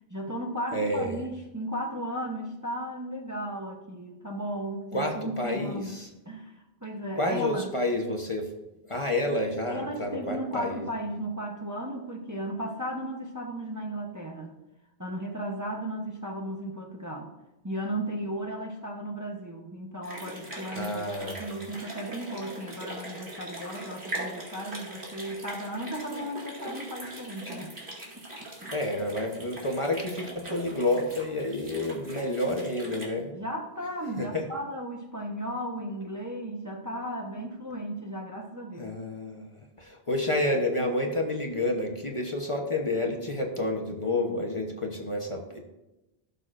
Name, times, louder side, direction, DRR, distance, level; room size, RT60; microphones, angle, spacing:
voice 1, 0.1-6.0 6.3-7.7 9.7-14.5 15.0-17.3 17.6-27.8 28.1-28.7 33.3-39.0, right 1 dB, 20° right, 0 dB, 0.9 m, -35 dB
voice 2, 0.7-1.2 4.9-6.1 7.2-8.5 8.8-10.9 20.7-21.4 28.7-33.3 34.2-34.4 38.8-45.6, left 1 dB, 30° left, 1 dB, 1.0 m, -29 dB
sound 1, 20.0-33.1, right 1 dB, 55° right, 2.3 m, -41 dB
16.5 x 6.7 x 2.5 m, 0.98 s
omnidirectional pair, 1.0 m